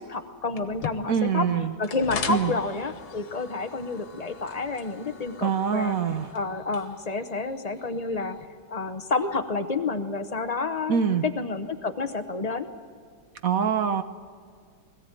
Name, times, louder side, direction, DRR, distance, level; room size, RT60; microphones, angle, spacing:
voice 1, 0.0-1.5 1.8-6.0 6.3-8.4 8.7-12.7, left 3 dB, 35° left, 8 dB, 0.6 m, -29 dB
sound 1, 0.6-8.5, left 6 dB, 80° left, 2.1 m, -40 dB
voice 2, 1.1-1.7 2.3-2.5 5.4-6.3 10.9-11.3 13.4-14.0, right 7 dB, 55° right, 10 dB, 1.0 m, -24 dB
21.0 x 16.0 x 9.0 m, 2.1 s
omnidirectional pair, 2.1 m